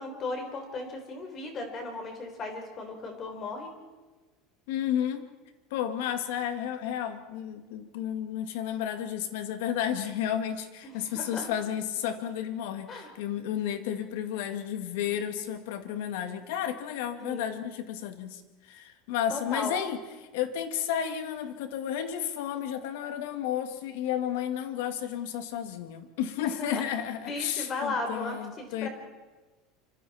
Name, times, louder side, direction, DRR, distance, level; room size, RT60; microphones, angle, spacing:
voice 1, 0.0-3.7 10.8-11.5 12.9-13.1 17.2-17.6 19.3-19.7 26.4-26.8 27.2-28.9, left 3 dB, 25° left, 4 dB, 4.1 m, -36 dB
voice 2, 4.7-5.3 5.7-20.0 20.3-28.9, left 10 dB, 75° left, 8 dB, 2.3 m, -32 dB
26.5 x 26.0 x 4.4 m, 1.2 s
cardioid pair, 170°, 0 cm